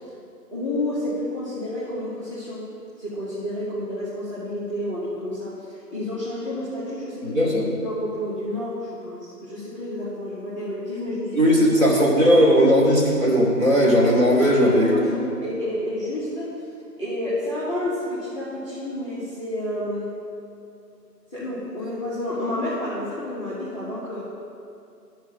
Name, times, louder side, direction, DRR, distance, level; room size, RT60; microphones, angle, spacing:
voice 1, 0.5-2.6 3.0-11.4 11.7-11.8 14.4-16.6 17.0-20.2 21.3-24.2, left 1 dB, 20° right, -10 dB, 1.4 m, -30 dB
voice 2, 7.3-7.7 11.3-15.1, equal, 55° right, -4 dB, 2.6 m, -17 dB
11.0 x 4.7 x 7.0 m, 2.5 s
figure-of-eight pair, 175°, 49 cm